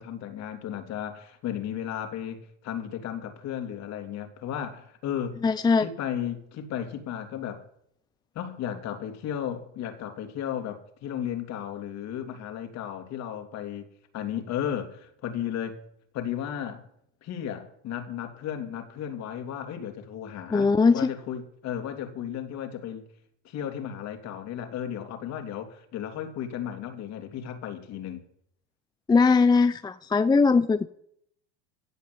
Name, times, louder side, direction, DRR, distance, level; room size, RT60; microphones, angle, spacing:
voice 1, 0.0-5.4 5.8-7.6 8.3-13.9 14.1-15.8 16.1-16.8 17.2-23.0 23.4-28.2, left 9 dB, 50° left, 3.2 m, -34 dB
voice 2, 5.4-5.9 20.5-21.1 29.1-30.9, left 4 dB, 10° left, 0.6 m, -20 dB
16.0 x 8.2 x 8.4 m
hypercardioid pair, 95°, 35 cm